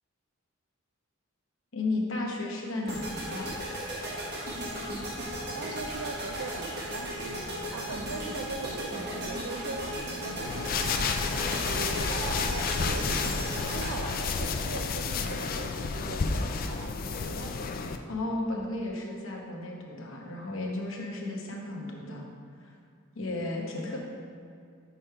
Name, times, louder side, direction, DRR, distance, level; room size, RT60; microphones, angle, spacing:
voice 1, 1.7-3.6 18.1-22.3 22.6-22.7 23.1-24.0, left 2 dB, 65° left, -1 dB, 1.0 m, -34 dB
sound 1, 2.9-15.1, equal, 50° right, 1.5 m, -36 dB
voice 2, 5.4-7.5 7.7-16.9 17.2-17.6, right 3 dB, 80° right, 2 dB, 0.4 m, -40 dB
sound 2, 10.4-18.0, left 4 dB, 40° left, 0.3 m, -31 dB
6.2 x 5.2 x 4.6 m, 2.3 s
head